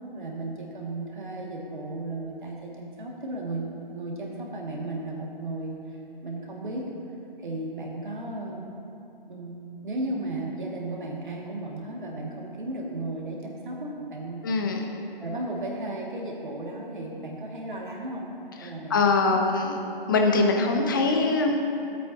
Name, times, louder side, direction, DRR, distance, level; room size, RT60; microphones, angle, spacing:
voice 1, 0.0-6.9 7.4-8.8 9.3-14.5 15.2-18.3 18.6-19.4, right 2 dB, 55° right, -2 dB, 2.1 m, -35 dB
voice 2, 14.4-14.9 18.9-19.7 20.1-21.6, left 3 dB, 20° left, 2 dB, 0.7 m, -22 dB
15.5 x 8.5 x 2.8 m, 2.7 s
figure-of-eight pair, 145°, 29 cm